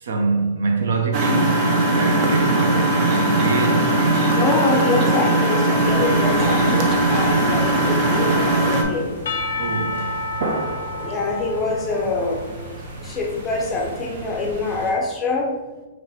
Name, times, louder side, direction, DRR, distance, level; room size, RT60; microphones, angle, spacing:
voice 1, 0.0-1.6 1.9-4.3 9.6-10.1 10.7-10.8, right 3 dB, 75° right, 0.7 m, -24 dB
Engine, 1.1-8.8, right 1 dB, 30° right, 0.5 m, -19 dB
voice 2, 4.3-9.2 11.0-12.4 13.0-15.5, left 3 dB, 15° left, 0.6 m, -25 dB
sound 1, 5.7-14.9, right 2 dB, 55° right, 0.9 m, -35 dB
Percussion / Church bell, 9.3-13.2, left 2 dB, 70° left, 0.4 m, -30 dB
3.3 x 3.0 x 4.3 m
hypercardioid pair, 165°, 0 cm